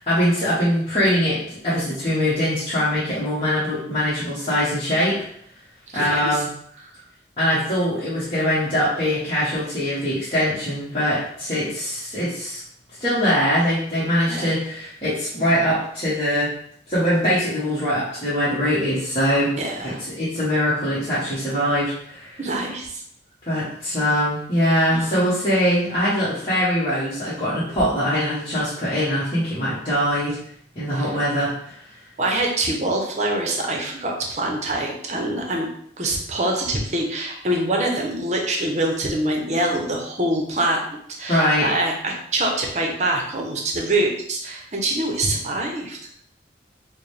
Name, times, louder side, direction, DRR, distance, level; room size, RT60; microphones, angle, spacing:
voice 1, 0.1-5.2 5.9-6.5 7.4-12.6 13.0-16.5 16.9-19.5 19.8-22.4 23.5-30.4 30.7-31.8 41.3-41.7, equal, 30° left, -12 dB, 1.2 m, -22 dB
voice 2, 5.9-6.4 14.3-14.5 19.6-20.0 22.4-23.0 24.9-25.3 30.9-31.2 32.2-35.7 36.0-40.8 41.2-46.1, right 1 dB, 40° right, 0 dB, 0.7 m, -25 dB
4.8 x 2.2 x 3.3 m, 0.67 s
head